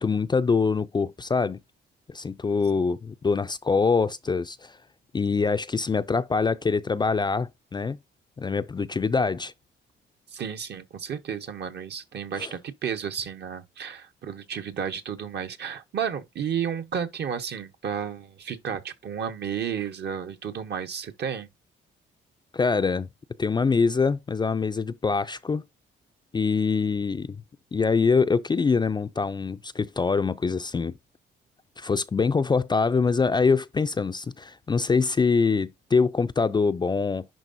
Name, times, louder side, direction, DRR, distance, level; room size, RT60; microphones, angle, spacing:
voice 1, 0.0-1.6 2.1-4.8 5.1-8.0 8.4-9.5 12.4-12.5 22.5-23.1 23.4-25.6 26.3-27.4 27.7-30.9 31.8-37.3, left 4 dB, 20° left, 0.4 m, -24 dB
voice 2, 10.3-21.5, right 7 dB, 60° right, 1.1 m, -32 dB
11.0 x 3.7 x 2.6 m
cardioid pair, 90°, 20 cm